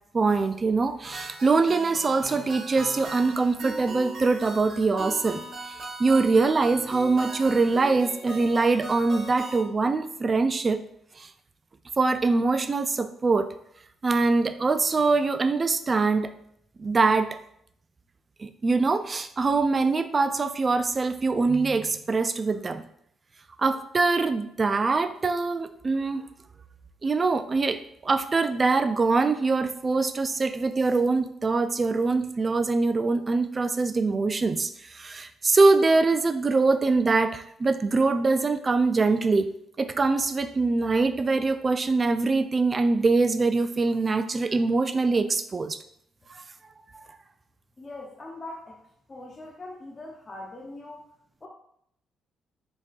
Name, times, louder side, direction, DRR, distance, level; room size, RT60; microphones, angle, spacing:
voice 1, 0.1-5.4 5.7-10.8 11.2-11.3 12.0-13.5 14.0-16.3 16.8-17.4 18.4-22.8 23.6-26.3 27.0-45.8 46.3-46.4, right 3 dB, 35° right, 9 dB, 0.3 m, -23 dB
sound 1, 1.0-9.6, right 1 dB, 55° right, 1.4 m, -39 dB
voice 2, 47.8-48.8 49.1-51.1 51.4-51.5, left 2 dB, 25° left, -1 dB, 0.6 m, -41 dB
3.9 x 3.5 x 2.4 m, 0.70 s
cardioid pair, 90°, 0 cm